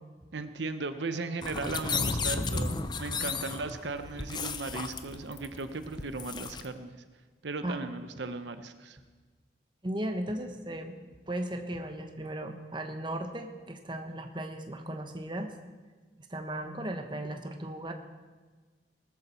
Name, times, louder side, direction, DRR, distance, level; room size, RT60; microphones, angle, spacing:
voice 1, 0.3-7.0 7.4-9.0, right 3 dB, 75° right, 9 dB, 0.8 m, -37 dB
sound 1, 1.4-6.7, left 4 dB, 25° left, 0.6 m, -34 dB
voice 2, 9.8-15.5 16.3-17.9, right 1 dB, 25° right, 5 dB, 1.1 m, -36 dB
19.0 x 14.0 x 4.4 m, 1.4 s
head